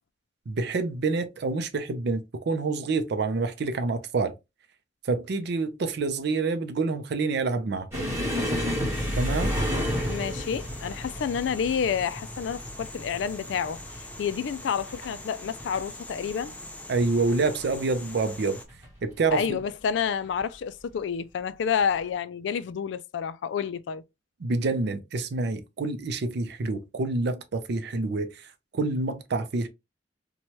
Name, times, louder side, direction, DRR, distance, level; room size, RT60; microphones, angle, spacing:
voice 1, 0.5-4.3 5.0-8.1 9.1-9.5 16.9-18.6 19.0-19.6 24.4-28.4 28.7-29.7, right 3 dB, 65° right, 0.5 m, -27 dB
sound 1, 7.9-15.1 15.4-15.8 16.1-16.3 17.1-17.7 18.7-18.9 20.2-20.4, equal, 15° right, 1.2 m, -31 dB
sound 2, 8.9-18.6, left 1 dB, 10° left, 0.4 m, -43 dB
voice 2, 10.1-16.5 19.3-24.0, left 7 dB, 70° left, 0.3 m, -29 dB
2.8 x 2.2 x 2.9 m
head